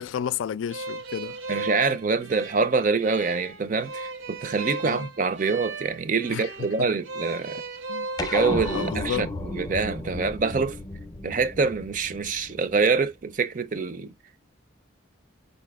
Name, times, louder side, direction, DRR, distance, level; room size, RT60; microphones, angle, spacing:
voice 1, 0.0-1.4 4.8-5.1 6.3-6.9 7.9-8.1 8.7-9.3, left 9 dB, 80° left, 0.3 m, -32 dB
sound 1, 0.7-8.9, right 3 dB, 75° right, 0.8 m, -37 dB
voice 2, 1.5-7.6 8.2-10.8 11.2-14.1, right 4 dB, 40° right, 0.5 m, -25 dB
sound 2, 8.2-12.9, left 2 dB, 20° left, 0.5 m, -33 dB
5.2 x 4.1 x 2.3 m
head